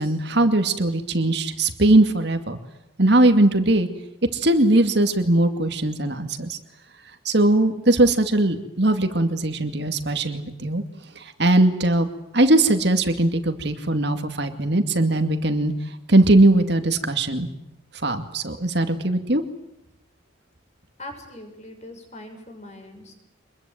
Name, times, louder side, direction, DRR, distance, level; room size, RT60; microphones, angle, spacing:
voice 1, 0.0-2.6 3.0-3.9 4.3-6.6 7.3-10.8 11.4-12.1 12.3-15.7 16.1-17.5 18.0-19.4, right 2 dB, 55° right, 7 dB, 2.4 m, -20 dB
voice 2, 21.0-23.1, left 1 dB, 35° left, 5 dB, 6.5 m, -41 dB
26.5 x 22.0 x 9.3 m, 0.83 s
head